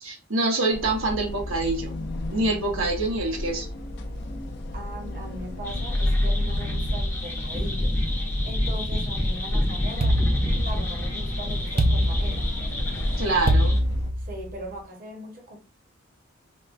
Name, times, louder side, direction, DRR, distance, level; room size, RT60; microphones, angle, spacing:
voice 1, 0.0-3.7 13.2-13.8, right 2 dB, 90° right, 1 dB, 0.9 m, -26 dB
sound 1, 0.7-14.1, left 1 dB, 60° left, 0.5 m, -32 dB
voice 2, 4.7-7.9 8.2-10.2 10.6-12.5 14.2-15.6, equal, 45° right, 1 dB, 0.9 m, -39 dB
sound 2, 5.6-13.8, left 1 dB, 10° left, 0.6 m, -29 dB
sound 3, 10.0-11.1 11.8-12.8 13.5-14.6, equal, 30° right, 0.4 m, -23 dB
4.2 x 2.1 x 2.4 m, 0.32 s
head